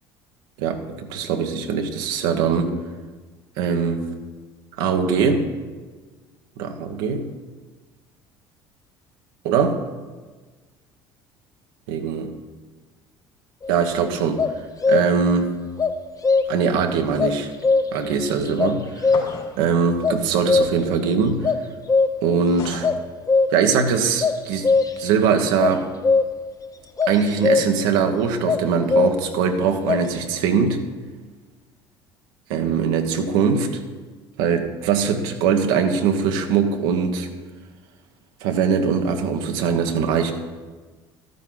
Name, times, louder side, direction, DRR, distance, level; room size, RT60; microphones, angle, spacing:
voice 1, 0.6-2.7 3.6-4.1 4.8-5.5 6.6-7.3 9.4-9.8 11.9-12.3 13.7-14.4 14.9-15.5 16.5-17.5 17.9-19.1 19.6-21.5 22.2-22.9 23.5-24.7 25.0-25.9 27.1-30.8 32.5-33.8 34.4-37.3 38.4-40.3, right 6 dB, 75° right, 5 dB, 1.3 m, -21 dB
sound 1, 13.6-13.9 14.4-15.3 15.8-16.7 17.2-18.1 18.6-19.5 20.0-21.0 21.4-22.4 22.8-23.8 24.2-25.1 25.6-26.5 27.0-27.9 28.5-29.4 29.9-30.1, left 4 dB, 30° left, 0.9 m, -20 dB
sound 2, 19.1-19.6 22.6-23.0, left 4 dB, 55° left, 3.0 m, -34 dB
13.0 x 9.2 x 4.0 m, 1.3 s
hypercardioid pair, 65°, 12 cm